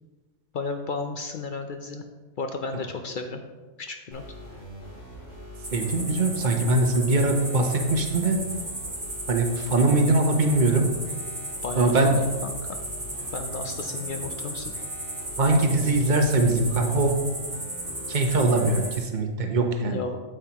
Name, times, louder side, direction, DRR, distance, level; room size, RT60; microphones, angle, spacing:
voice 1, 0.5-2.0 2.4-3.4 3.8-4.2 9.9-10.2 11.6-12.8 13.3-14.7 19.9-20.2, left 4 dB, 60° left, 6 dB, 0.5 m, -33 dB
sound 1, 4.1-18.9, equal, 80° left, 3.2 m, -43 dB
sound 2, 5.6-19.0, right 1 dB, 25° right, 1.4 m, -35 dB
voice 2, 5.7-8.4 9.3-10.9 11.8-12.1 15.4-17.2 18.1-20.0, right 2 dB, 40° right, 3 dB, 0.9 m, -22 dB
8.4 x 7.7 x 2.9 m, 1.3 s
omnidirectional pair, 1.3 m